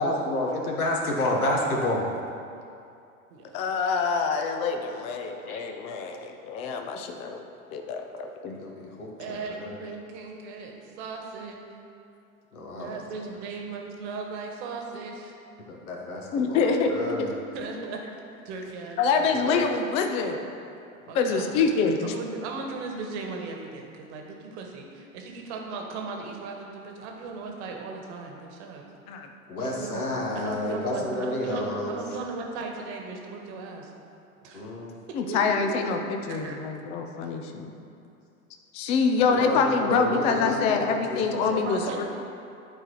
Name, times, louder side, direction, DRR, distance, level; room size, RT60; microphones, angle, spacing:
voice 1, 0.0-2.1 5.3-5.6 8.5-9.7 12.5-13.0 15.7-17.3 19.5-19.6 29.5-32.0 34.5-34.9 39.3-41.6, left 1 dB, 75° left, -1 dB, 1.3 m, -30 dB
voice 2, 3.5-7.4 7.7-8.6 16.3-16.9 17.2-17.3 19.0-20.4 21.1-22.1 29.1-29.3 35.1-37.7 38.7-42.0, left 5 dB, 15° left, 5 dB, 0.3 m, -26 dB
voice 3, 9.2-11.6 12.7-15.3 17.5-18.0 18.4-19.3 21.1-21.7 22.0-28.8 29.6-30.1 30.3-33.9 34.4-34.6 35.3-35.8 36.3-36.6 41.4-42.0, right 4 dB, 50° right, 2 dB, 1.5 m, -37 dB
11.0 x 4.6 x 4.5 m, 2.5 s
figure-of-eight pair, 90°, 43 cm